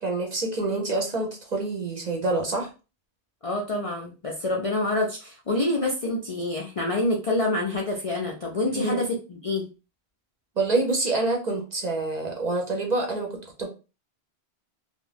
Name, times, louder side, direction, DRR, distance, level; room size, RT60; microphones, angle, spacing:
voice 1, 0.0-2.7 8.7-9.0 10.6-13.7, right 2 dB, 45° right, 1 dB, 0.6 m, -27 dB
voice 2, 3.4-9.7, left 2 dB, 50° left, -1 dB, 0.4 m, -27 dB
2.5 x 2.1 x 3.2 m, 0.32 s
omnidirectional pair, 1.1 m